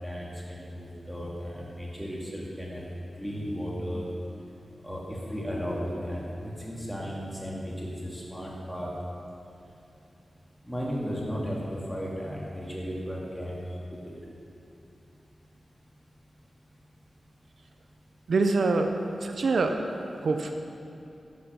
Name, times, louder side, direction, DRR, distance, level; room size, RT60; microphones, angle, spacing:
voice 1, 0.0-2.9 3.2-4.0 4.8-8.9 10.7-13.6 14.0-14.1, equal, 5° left, -5 dB, 2.3 m, -35 dB
voice 2, 18.3-18.9 19.2-19.8 20.2-20.5, right 3 dB, 70° right, 4 dB, 0.6 m, -24 dB
11.0 x 7.3 x 6.2 m, 2.7 s
wide cardioid pair, 115°, 0 cm